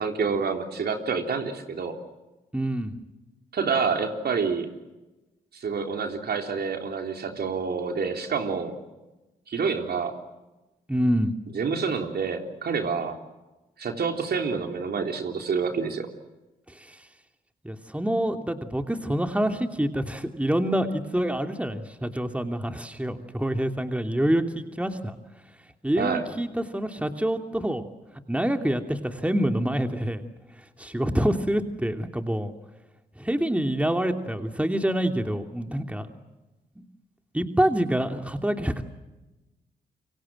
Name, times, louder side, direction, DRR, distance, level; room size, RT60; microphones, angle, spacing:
voice 1, 0.0-2.0 3.5-4.7 5.5-8.8 9.5-10.1 11.5-13.2 13.8-16.1 26.0-26.3, right 5 dB, 60° right, 4 dB, 3.7 m, -28 dB
voice 2, 2.5-3.0 10.9-11.3 16.7-17.1 17.6-25.2 25.8-27.9 28.3-30.2 30.6-32.5 33.2-36.1 36.8-36.9 37.3-38.8, right 1 dB, 5° right, 5 dB, 2.8 m, -26 dB
28.0 x 24.5 x 7.7 m, 1.1 s
supercardioid pair, 45°, 18 cm